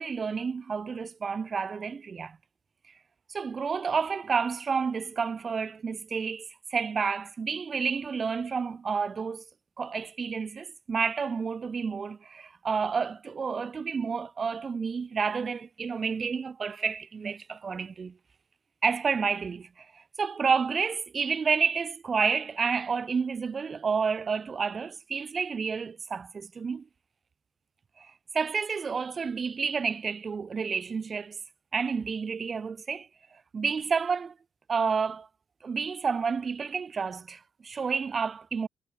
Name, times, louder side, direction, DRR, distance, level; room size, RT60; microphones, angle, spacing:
voice 1, 0.0-2.4 3.3-9.4 9.8-18.2 18.8-26.8 28.0-31.4 31.7-33.1 33.5-34.3 34.7-35.3 35.6-38.7, right 5 dB, 40° right, 1.5 m, -30 dB
cardioid pair, 90°, 0 cm